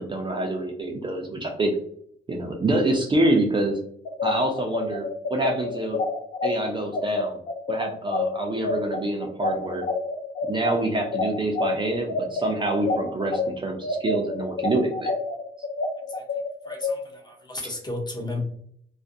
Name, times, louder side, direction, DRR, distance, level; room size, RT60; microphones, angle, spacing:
voice 1, 0.0-1.7 2.3-3.8 4.2-5.0 5.3-6.0 6.4-7.4 7.7-9.9 10.5-15.1, right 1 dB, 25° right, 1 dB, 0.4 m, -26 dB
sound 1, 4.0-13.4 13.8-16.9, left 3 dB, 55° left, 0.5 m, -27 dB
voice 2, 16.6-18.4, left 2 dB, 20° left, 2 dB, 0.6 m, -34 dB
2.4 x 2.1 x 2.6 m, 0.66 s
cardioid pair, 90°, 20 cm